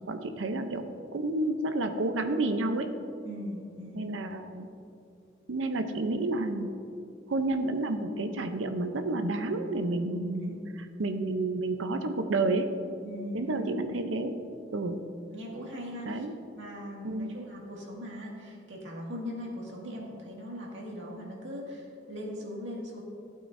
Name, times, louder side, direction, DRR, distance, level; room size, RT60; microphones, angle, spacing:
voice 1, 0.1-0.9 1.1-2.9 3.9-4.7 5.5-6.7 7.3-10.5 11.0-12.7 13.3-14.4 14.7-15.0 16.0-16.3 17.0-17.3, right 2 dB, 90° right, 7 dB, 0.7 m, -30 dB
voice 2, 3.2-4.1 10.4-10.6 13.0-13.7 15.3-16.3 16.5-23.0, equal, 75° right, -3 dB, 2.1 m, -40 dB
15.0 x 8.5 x 2.6 m, 2.5 s
head